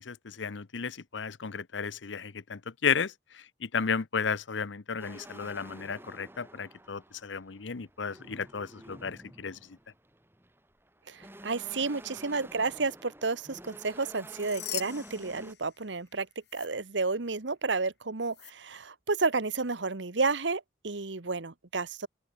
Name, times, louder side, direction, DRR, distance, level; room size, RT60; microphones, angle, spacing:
voice 1, 0.0-9.8, left 6 dB, 85° left, 0.8 m, -34 dB
sound 1, 5.0-15.5, right 1 dB, 10° right, 7.0 m, -50 dB
voice 2, 11.1-16.3 16.5-22.1, right 4 dB, 80° right, 1.3 m, -31 dB
sound 2, 14.1-16.1 16.4-16.7 18.3-18.5, left 14 dB, 65° left, 2.8 m, -41 dB
open air
head